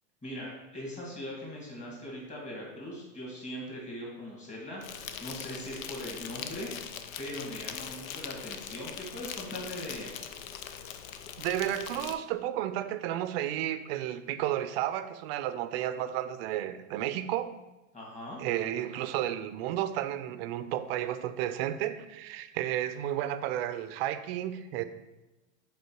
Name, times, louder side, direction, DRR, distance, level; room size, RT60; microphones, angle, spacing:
voice 1, 0.2-10.2 17.9-18.4, left 1 dB, 20° left, -4 dB, 2.1 m, -40 dB
Insect, 4.8-12.1, left 8 dB, 85° left, 0.6 m, -41 dB
voice 2, 11.4-17.5 18.4-24.8, right 12 dB, 50° right, 11 dB, 0.5 m, -32 dB
5.4 x 4.4 x 4.5 m, 1.0 s
supercardioid pair, 130°, 39 cm